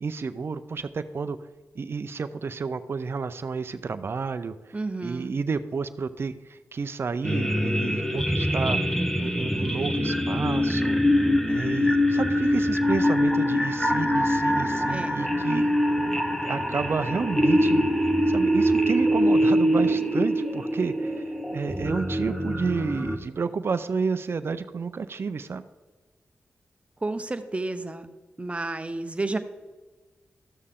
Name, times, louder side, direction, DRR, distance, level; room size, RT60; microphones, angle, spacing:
voice 1, 0.0-1.4 1.7-8.8 9.2-11.0 11.5-15.7 16.4-17.9 18.3-25.6, right 5 dB, 50° right, 10 dB, 0.5 m, -30 dB
voice 2, 4.7-5.3 14.9-15.2 27.0-28.1 28.4-29.4, right 2 dB, 25° right, 9 dB, 0.8 m, -31 dB
sound 1, 7.2-23.2, equal, 10° left, 1.1 m, -24 dB
13.0 x 6.5 x 3.7 m, 1.3 s
cardioid pair, 60°, 5 cm